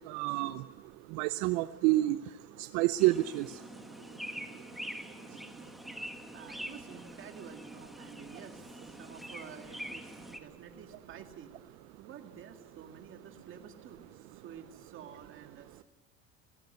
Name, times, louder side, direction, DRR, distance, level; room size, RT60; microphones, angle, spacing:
voice 1, 0.1-0.6 1.1-2.2 2.6-3.6, right 17 dB, 70° right, 14 dB, 0.6 m, -28 dB
sound 1, 3.0-10.4, equal, ahead, 1.4 m, -45 dB
voice 2, 5.6-15.8, right 7 dB, 45° right, 5 dB, 2.2 m, -51 dB
18.5 x 17.0 x 9.4 m, 1.5 s
supercardioid pair, 120°, 29 cm